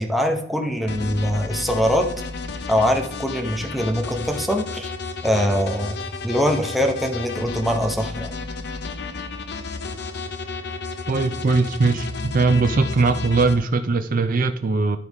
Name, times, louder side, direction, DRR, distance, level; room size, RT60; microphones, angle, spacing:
voice 1, 0.0-2.1 2.7-4.9 5.2-6.0 6.2-8.3, equal, ahead, 2 dB, 0.9 m, -22 dB
sound 1, 0.9-13.5, left 4 dB, 60° left, 0.8 m, -32 dB
voice 2, 11.1-15.0, right 3 dB, 45° right, 8 dB, 0.5 m, -20 dB
11.5 x 4.8 x 3.5 m, 0.70 s
head